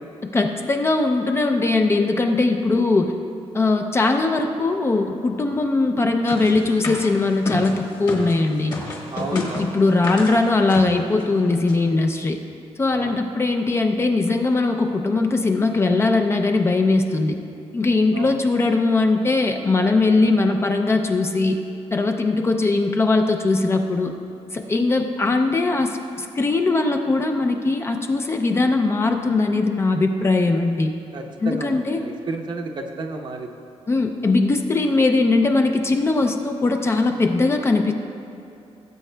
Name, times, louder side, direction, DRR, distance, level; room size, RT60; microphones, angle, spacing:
voice 1, 0.2-3.1 3.5-8.7 9.3-12.4 12.8-17.4 17.7-21.6 21.9-24.1 24.5-30.9 31.4-32.0 33.9-37.9, left 3 dB, 20° left, 4 dB, 0.4 m, -20 dB
sound 1, 6.3-8.4 8.7-10.3 10.7-10.9 11.2-11.3 11.5-11.7, left 2 dB, 40° left, 1.4 m, -30 dB
voice 2, 9.1-9.8 12.9-13.1 18.1-18.3 31.1-33.5, right 3 dB, 40° right, 3 dB, 0.7 m, -32 dB
17.5 x 8.1 x 2.2 m, 2.6 s
wide cardioid pair, 180°, 11 cm